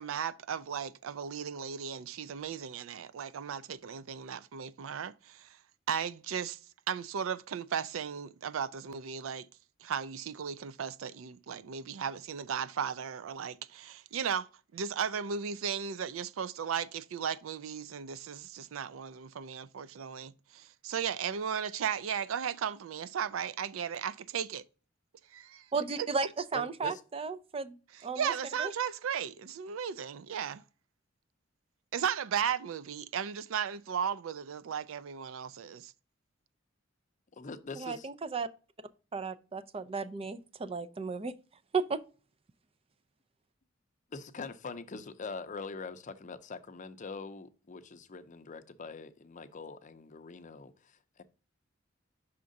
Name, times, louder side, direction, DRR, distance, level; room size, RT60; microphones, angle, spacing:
voice 1, 0.0-5.6 5.9-6.6 6.9-9.5 9.8-24.6 25.3-25.7 26.0-26.1 28.1-30.6 31.9-35.9, right 7 dB, 85° right, 0.4 m, -36 dB
voice 2, 25.7-27.7 28.0-28.3 28.6-28.7 37.8-38.5 39.1-41.3 41.7-42.0, right 4 dB, 30° right, 0.4 m, -34 dB
voice 3, 26.5-27.0 37.3-38.1 44.1-51.2, left 4 dB, 40° left, 0.5 m, -43 dB
5.8 x 3.7 x 5.2 m
head